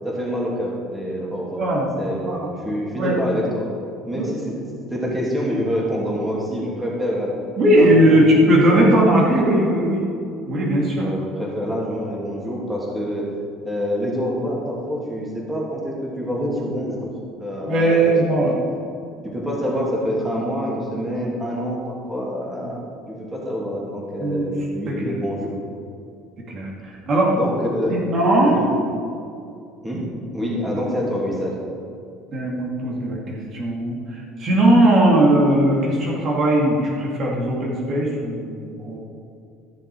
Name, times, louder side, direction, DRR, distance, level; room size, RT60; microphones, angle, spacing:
voice 1, 0.0-1.6 2.0-3.7 4.0-7.3 7.7-8.9 10.8-13.3 13.6-17.1 17.4-18.5 19.2-22.8 23.1-25.5 27.3-28.8 29.8-30.1 30.3-31.6, equal, 10° right, -4 dB, 2.8 m, -26 dB
voice 2, 1.6-1.9 2.2-2.5 3.0-3.2 4.1-4.2 7.6-10.0 10.5-11.0 17.7-18.5 22.7-22.8 24.2-24.5 25.0-25.2 26.5-27.3 27.9-28.6 30.7-30.8 32.3-39.0, right 1 dB, 50° right, -3 dB, 2.6 m, -18 dB
14.0 x 6.6 x 4.8 m, 2.5 s
supercardioid pair, 85°, 0 cm